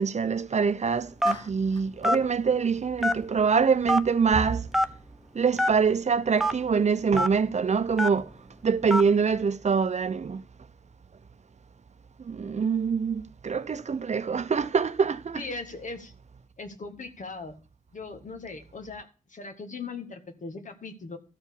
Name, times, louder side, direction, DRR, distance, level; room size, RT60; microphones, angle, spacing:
voice 1, 0.0-4.7 5.4-8.3 8.6-10.4 12.3-15.4, right 5 dB, 55° right, 0.6 m, -25 dB
Telephone, 1.2-1.5 2.0-2.2 3.0-3.4 3.9-4.0 4.7-4.9 5.6-5.7 6.4-6.5 7.2-7.3 8.0-8.2 8.9-9.1, equal, ahead, 0.8 m, -23 dB
Clapping, 1.3-1.9, left 2 dB, 30° left, 1.3 m, -45 dB
voice 2, 15.3-16.1 16.6-17.5 17.9-21.2, left 4 dB, 65° left, 1.8 m, -39 dB
13.0 x 4.5 x 8.5 m
cardioid pair, 50°, 14 cm